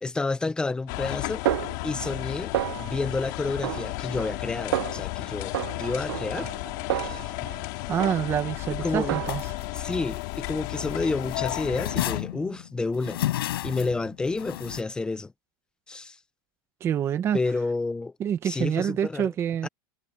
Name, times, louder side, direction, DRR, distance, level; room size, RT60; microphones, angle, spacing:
voice 1, 0.0-1.4 1.8-2.5 2.8-5.5 5.8-6.5 7.0-7.3 8.8-9.2 9.7-13.2 13.6-15.3 15.9-16.2 17.3-18.1 18.4-19.3 19.6-19.7, left 3 dB, 5° left, 0.7 m, -30 dB
sound 1, 0.9-12.2, left 23 dB, 50° left, 2.5 m, -33 dB
Snare drum, 1.5-2.3 2.5-3.1 3.6-4.4 4.7-5.1 5.5-7.6 8.0-8.5 9.0-9.6, right 14 dB, 90° right, 0.6 m, -31 dB
voice 2, 7.9-9.5 16.8-17.4 18.2-19.7, right 9 dB, 20° right, 1.0 m, -26 dB
sound 2, 9.3-11.0 11.2-14.8, left 14 dB, 90° left, 5.5 m, -32 dB
supercardioid pair, 165°, 12 cm